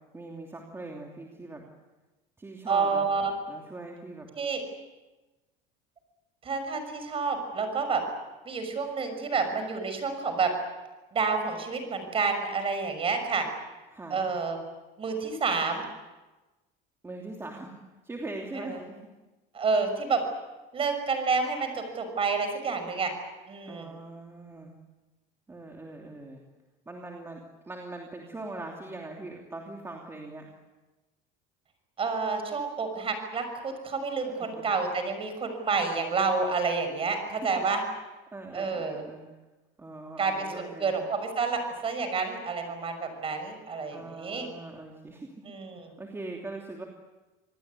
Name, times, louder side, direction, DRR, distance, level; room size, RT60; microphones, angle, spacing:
voice 1, 0.1-1.6 2.4-3.1 3.5-4.3 13.9-14.2 17.0-19.0 23.7-24.7 25.5-26.4 26.9-30.5 34.3-34.5 37.6-37.7 38.3-39.2 39.8-40.9 43.9-45.4 46.0-46.8, right 2 dB, 10° right, 0 dB, 2.9 m, -41 dB
voice 2, 2.7-3.3 4.3-4.6 6.4-8.0 8.4-10.5 11.1-13.5 14.1-14.6 15.0-15.8 18.5-18.8 19.5-20.2 20.7-23.1 23.5-23.9 32.0-37.8 38.5-39.0 40.2-44.5 45.4-45.9, right 4 dB, 25° right, 7 dB, 6.1 m, -29 dB
27.0 x 19.5 x 9.6 m, 1.1 s
cardioid pair, 145°, 20 cm